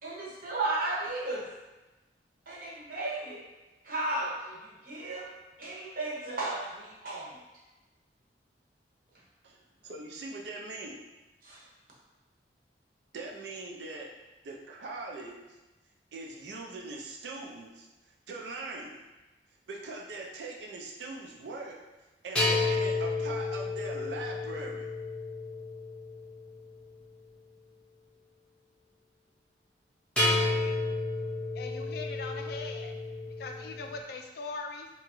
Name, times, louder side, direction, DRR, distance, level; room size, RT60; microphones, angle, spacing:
voice 1, 0.0-1.5 2.5-3.4 3.8-5.3 5.6-7.3 11.4-11.6, right 2 dB, 55° right, -5 dB, 0.8 m, -34 dB
voice 2, 9.4-11.0 13.1-14.1 14.4-15.6 16.1-17.9 18.3-19.0 19.7-21.8 22.2-24.9, right 3 dB, 75° right, -1 dB, 0.4 m, -41 dB
sound 1, 22.4-26.7 30.2-34.0, left 2 dB, 5° left, 0.7 m, -31 dB
voice 3, 31.5-32.9 33.4-34.9, left 3 dB, 60° left, 3 dB, 0.3 m, -40 dB
2.9 x 2.3 x 2.9 m, 1.1 s
head